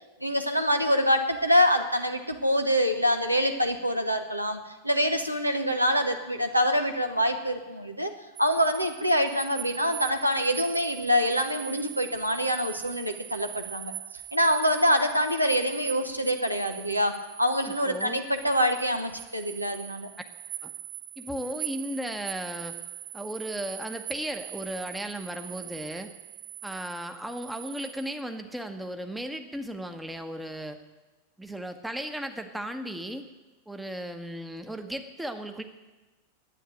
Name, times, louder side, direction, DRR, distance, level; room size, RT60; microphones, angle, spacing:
voice 1, 0.2-8.1 8.4-13.9 14.3-20.1, equal, 90° right, 6 dB, 1.0 m, -25 dB
sound 1, 8.4-28.2, right 13 dB, 40° right, 1.0 m, -41 dB
voice 2, 17.7-18.2 20.6-20.7 21.2-22.8 23.1-26.1 26.6-30.8 31.4-33.3 33.7-35.6, right 1 dB, 5° right, 6 dB, 1.0 m, -35 dB
11.0 x 9.2 x 9.1 m, 1.2 s
figure-of-eight pair, 90°, 0 cm